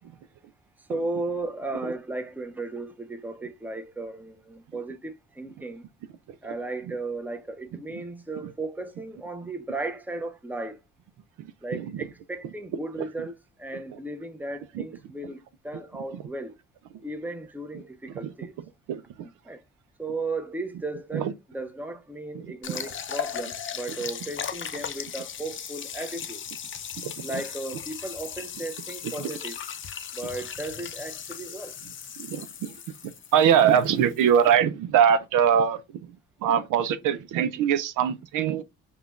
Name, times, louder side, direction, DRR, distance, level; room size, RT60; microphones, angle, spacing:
voice 1, 0.9-5.9 6.4-10.8 11.6-13.3 13.6-16.6 17.0-18.5 19.4-19.6 20.0-26.4 27.2-29.6 30.1-31.8, right 2 dB, 5° right, 0.7 m, -35 dB
voice 2, 11.4-12.0 13.0-13.1 14.7-14.8 16.1-16.2 18.1-18.3 18.9-19.3 21.1-21.3 22.3-22.4 22.7-22.9 27.0-27.4 29.2-29.3 32.2-32.7 33.0-35.8 36.4-38.6, right 8 dB, 85° right, 0.5 m, -23 dB
sound 1, 22.6-34.5, left 8 dB, 40° left, 0.6 m, -37 dB
5.5 x 2.3 x 2.4 m
cardioid pair, 90°, 30 cm